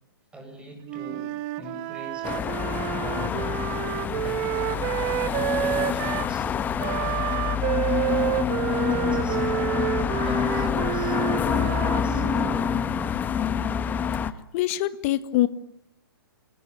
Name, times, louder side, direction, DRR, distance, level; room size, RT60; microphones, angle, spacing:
voice 1, 0.3-1.3 1.6-2.7 3.0-3.4 4.0-4.9 5.6-7.3 8.0-12.9, equal, 10° right, 5 dB, 8.0 m, -41 dB
Wind instrument woodwind instrument, 0.9-6.3 6.8-12.7, right 14 dB, 30° right, 1.7 m, -29 dB
sound 1, 2.2-14.3, left 8 dB, 15° left, 1.2 m, -27 dB
voice 2, 14.5-15.5, left 15 dB, 35° left, 12 dB, 1.8 m, -23 dB
29.5 x 22.0 x 8.8 m, 0.71 s
hypercardioid pair, 130°, 12 cm